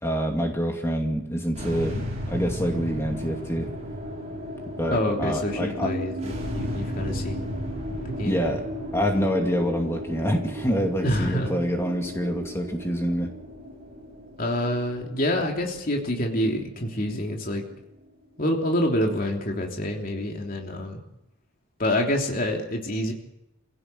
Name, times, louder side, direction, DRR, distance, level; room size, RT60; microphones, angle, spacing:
voice 1, 0.0-3.7 4.8-5.9 8.2-8.6 8.9-13.3, equal, 10° left, 2 dB, 2.4 m, -26 dB
sound 1, 1.5-17.9, equal, 30° right, 7.0 m, -35 dB
voice 2, 4.9-7.5 8.0-8.4 11.0-11.5 14.4-17.6 18.4-21.0 21.8-23.1, left 1 dB, 40° left, 1 dB, 3.2 m, -27 dB
25.0 x 17.0 x 7.9 m, 0.85 s
head